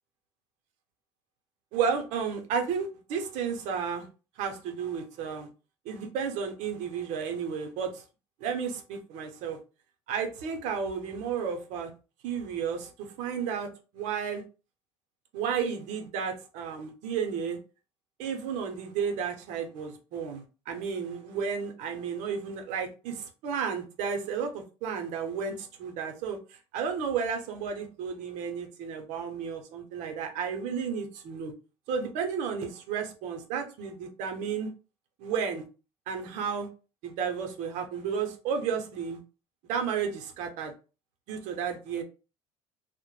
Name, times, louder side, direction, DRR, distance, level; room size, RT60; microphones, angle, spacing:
voice 1, 1.7-4.1 4.4-5.5 5.9-8.0 8.4-9.6 10.1-11.9 12.2-14.4 15.3-17.6 18.2-31.5 31.9-34.7 35.2-35.6 36.1-36.7 37.0-39.2 39.7-40.7 41.3-42.0, right 6 dB, 75° right, 0.6 m, -32 dB
2.1 x 2.0 x 3.0 m
cardioid pair, 110°, 13 cm